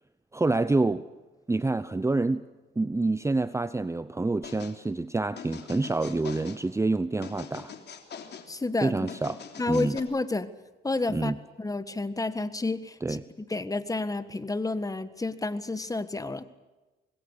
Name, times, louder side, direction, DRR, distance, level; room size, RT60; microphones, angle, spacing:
voice 1, 0.3-1.0 1.5-2.4 2.8-7.7 8.8-9.4 9.7-10.0 11.1-11.4 13.0-13.2, right 3 dB, 15° right, 14 dB, 0.8 m, -27 dB
sound 1, 4.4-4.8 5.4-6.6 7.2-8.5 9.1-10.0, left 7 dB, 60° left, 3.4 m, -43 dB
voice 2, 8.5-9.0 9.6-10.5 10.8-11.3 11.6-16.4, left 3 dB, 15° left, 13 dB, 1.7 m, -30 dB
26.0 x 21.0 x 8.4 m, 1.2 s
cardioid pair, 90°, 20 cm